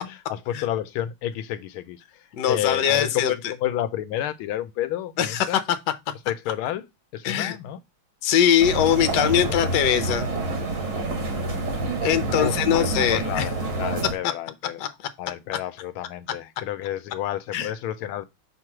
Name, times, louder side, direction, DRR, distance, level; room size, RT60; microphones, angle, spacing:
voice 1, 0.0-5.6 6.3-6.9 7.1-7.8 9.3-9.7 12.4-18.2, left 12 dB, 85° left, 1.5 m, -31 dB
voice 2, 2.4-3.3 5.2-5.5 7.2-7.6 8.2-10.3 12.0-13.4 14.8-14.9 17.5-17.7, left 9 dB, 65° left, 1.3 m, -21 dB
sound 1, 8.6-14.1, right 2 dB, 60° right, 2.4 m, -27 dB
6.2 x 3.1 x 5.8 m
omnidirectional pair, 2.3 m